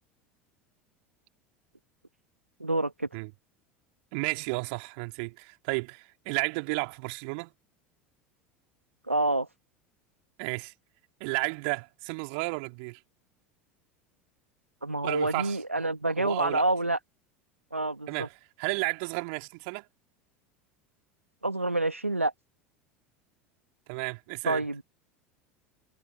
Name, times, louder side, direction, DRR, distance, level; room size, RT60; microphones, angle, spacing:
voice 1, 2.6-3.1 9.1-9.5 14.8-17.0 17.7-18.3 21.4-22.3 24.4-24.8, right 2 dB, 90° right, 2.3 m, -27 dB
voice 2, 4.1-7.5 10.4-10.7 11.2-13.0 15.0-16.6 18.1-18.3 18.6-19.8 23.9-24.6, right 32 dB, 55° right, 3.4 m, -33 dB
figure-of-eight pair, 75°, 7 cm